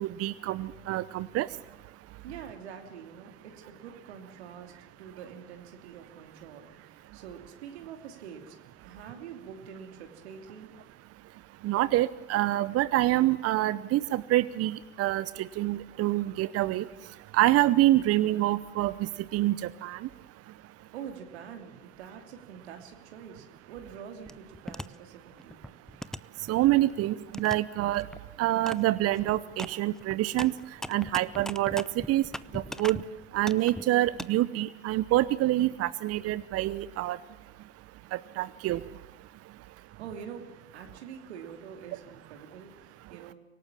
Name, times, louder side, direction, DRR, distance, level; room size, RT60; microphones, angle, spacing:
voice 1, 0.0-1.5 11.6-16.9 17.3-20.0 26.5-28.0 28.4-30.5 30.9-32.3 32.5-33.0 33.3-37.2 38.4-38.8, right 15 dB, 45° right, 17 dB, 0.9 m, -26 dB
voice 2, 2.2-8.6 8.8-10.7 20.9-25.7 39.7-43.3, right 7 dB, 75° right, 5 dB, 2.9 m, -45 dB
sound 1, 24.3-24.9 25.4-26.9 27.3-27.5 27.9-28.2 28.7-28.8 29.1-33.0 33.4-34.3, left 1 dB, ahead, 0.7 m, -39 dB
25.5 x 18.0 x 7.3 m, 1.2 s
hypercardioid pair, 70°, 33 cm